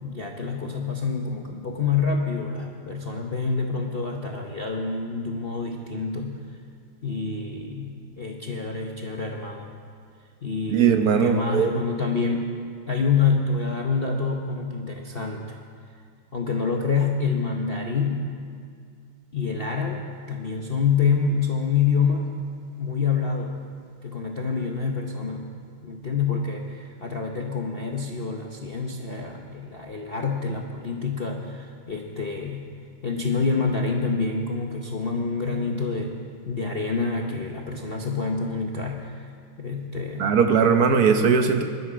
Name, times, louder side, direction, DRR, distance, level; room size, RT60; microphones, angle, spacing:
voice 1, 0.0-6.4 7.0-9.7 10.4-12.5 12.9-15.6 16.3-18.3 19.3-22.3 22.8-23.5 24.0-25.5 25.8-32.7 33.0-36.2 36.4-39.3 39.6-40.3, left 5 dB, 55° left, 1 dB, 0.6 m, -27 dB
voice 2, 10.7-11.8 40.2-41.6, right 6 dB, 55° right, 6 dB, 1.2 m, -19 dB
20.0 x 12.5 x 5.0 m, 2.2 s
omnidirectional pair, 2.4 m